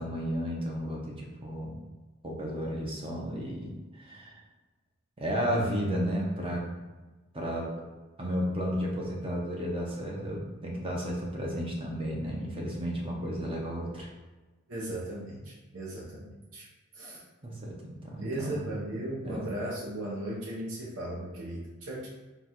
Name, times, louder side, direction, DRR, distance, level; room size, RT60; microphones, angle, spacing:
voice 1, 0.0-1.8 2.2-4.4 5.2-6.8 7.3-7.7 8.2-14.1 17.4-18.7 19.2-19.4, equal, 25° right, -2 dB, 0.7 m, -33 dB
voice 2, 14.7-16.7 16.9-17.2 18.2-22.1, right 1 dB, 70° right, -6 dB, 0.8 m, -37 dB
3.9 x 2.4 x 4.3 m, 1.2 s
head